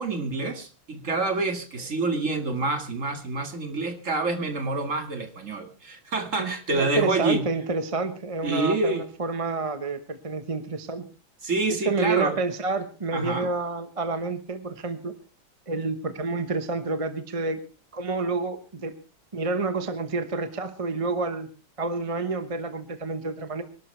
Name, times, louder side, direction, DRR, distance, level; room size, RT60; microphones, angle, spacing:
voice 1, 0.0-7.5 8.4-9.1 11.4-12.4 13.1-13.5, right 3 dB, 40° right, 7 dB, 2.1 m, -27 dB
voice 2, 6.4-11.1 11.7-15.1 15.7-17.6 17.9-18.9 19.3-21.5 21.8-23.6, right 3 dB, 25° right, 9 dB, 0.8 m, -29 dB
25.0 x 12.0 x 3.3 m, 0.32 s
omnidirectional pair, 2.2 m